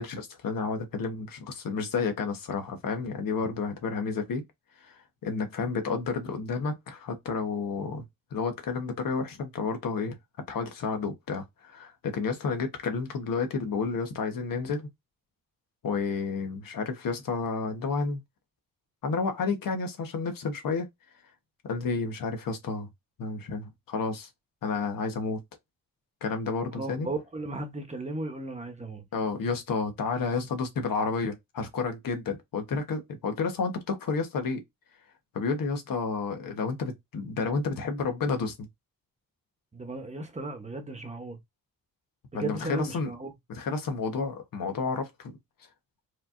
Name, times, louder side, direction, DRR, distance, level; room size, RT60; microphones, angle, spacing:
voice 1, 0.0-4.4 4.8-8.0 8.3-10.2 10.5-14.8 15.8-18.2 19.0-20.9 21.6-22.9 23.2-24.3 24.6-25.4 26.2-27.1 29.1-34.6 35.3-38.7 42.3-43.1 43.5-45.3, left 4 dB, 75° left, 1.2 m, -31 dB
voice 2, 26.7-29.0 39.7-41.4 42.3-43.3, right 2 dB, 20° right, 1.1 m, -35 dB
4.8 x 3.0 x 2.6 m
wide cardioid pair, 115°, 34 cm